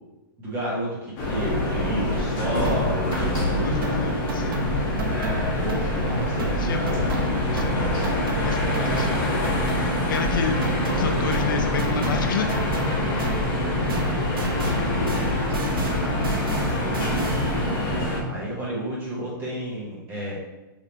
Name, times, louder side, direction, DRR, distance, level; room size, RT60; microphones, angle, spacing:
voice 1, 0.4-4.0 5.5-6.7 8.4-9.2 15.8-17.4 18.2-20.3, right 1 dB, 20° right, -5 dB, 1.3 m, -32 dB
sound 1, 1.2-18.2, left 1 dB, 30° left, 1.1 m, -25 dB
sound 2, 2.6-6.1 6.4-13.6 13.9-17.7, equal, 80° right, 0.8 m, -32 dB
voice 2, 3.6-4.7 6.5-8.1 8.3-9.2 9.8-10.6 10.9-12.5, left 6 dB, 65° left, 5 dB, 0.5 m, -31 dB
4.8 x 3.5 x 2.9 m, 1.1 s
hypercardioid pair, 165°, 12 cm